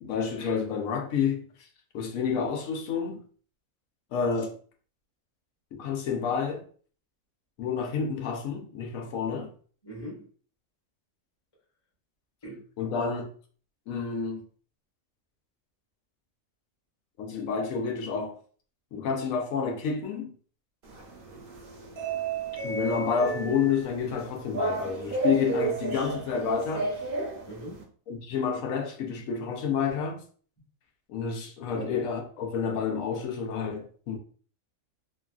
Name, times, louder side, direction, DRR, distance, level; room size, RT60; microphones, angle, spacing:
voice 1, 0.0-1.7 1.9-3.2 4.1-4.5 5.7-6.6 7.6-9.5 12.8-13.3 13.9-14.4 17.2-18.4 18.9-20.3 22.6-26.9 28.1-30.2 31.1-34.2, left 6 dB, 80° left, 1.0 m, -29 dB
voice 2, 9.8-10.3 12.4-12.6 27.5-27.9 31.7-32.0, right 2 dB, 20° left, 1.0 m, -40 dB
sound 1, 20.8-27.8, right 3 dB, 50° right, 0.8 m, -33 dB
3.1 x 2.3 x 2.3 m
omnidirectional pair, 1.4 m